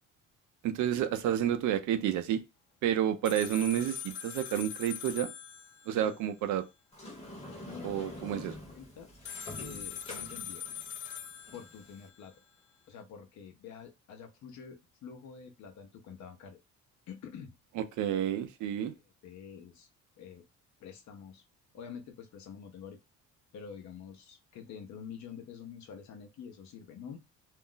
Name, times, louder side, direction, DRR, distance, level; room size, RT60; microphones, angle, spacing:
voice 1, 0.6-2.4 2.8-5.3 5.9-6.6 7.8-8.5 17.8-18.9, right 10 dB, 65° right, 0.5 m, -30 dB
sound 1, 3.3-6.2 9.3-12.1, left 9 dB, 35° left, 0.4 m, -42 dB
Sliding door, 6.9-12.1, left 1 dB, 20° left, 0.9 m, -46 dB
voice 2, 7.6-9.1 9.6-10.6 11.5-12.4 12.9-16.6 17.1-17.5 19.2-19.9 20.2-20.4 20.8-21.4 21.7-23.0 23.5-27.2, left 7 dB, 60° left, 0.7 m, -47 dB
2.5 x 2.0 x 3.7 m
cardioid pair, 135°, 32 cm